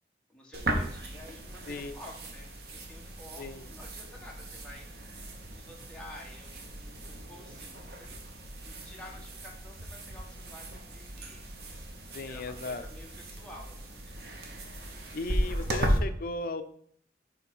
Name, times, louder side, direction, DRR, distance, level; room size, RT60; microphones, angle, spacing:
voice 1, 0.3-4.9 5.4-8.2 8.6-11.4 12.3-14.2, left 1 dB, 5° left, -3 dB, 1.4 m, -51 dB
sound 1, 0.5-16.0, right 1 dB, 60° right, 1.1 m, -36 dB
voice 2, 12.1-12.8 15.1-16.6, left 2 dB, 50° left, 10 dB, 0.5 m, -36 dB
7.1 x 3.3 x 6.0 m, 0.62 s
head